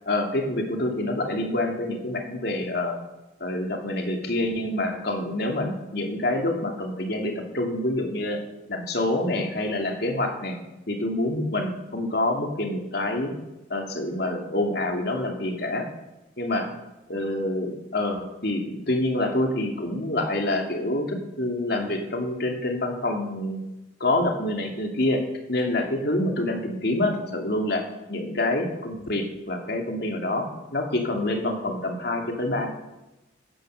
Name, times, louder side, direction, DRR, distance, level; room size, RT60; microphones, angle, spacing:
voice 1, 0.1-3.0 3.4-8.4 8.7-10.6 10.9-13.3 13.7-15.9 16.4-16.7 17.1-23.6 24.0-25.2 25.5-27.8 28.1-32.7, left 1 dB, 55° left, 2 dB, 2.6 m, -27 dB
15.0 x 10.0 x 6.4 m, 1.0 s
head